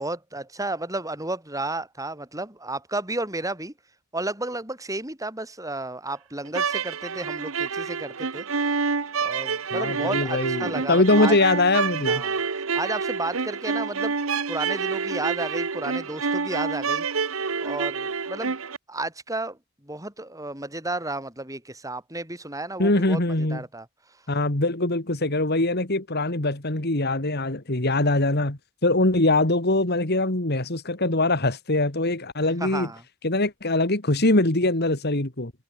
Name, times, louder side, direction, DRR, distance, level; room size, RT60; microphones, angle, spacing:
voice 1, 0.0-3.7 4.1-8.5 9.2-11.3 12.1-12.4 12.7-14.1 14.5-17.1 17.6-18.6 18.9-23.9 32.6-33.0, right 2 dB, 15° right, 7.4 m, -32 dB
sound 1, 6.5-18.8, right 5 dB, 75° right, 1.1 m, -28 dB
voice 2, 9.7-12.2 22.8-23.6 24.3-32.9 33.2-35.5, left 2 dB, 50° left, 2.6 m, -23 dB
head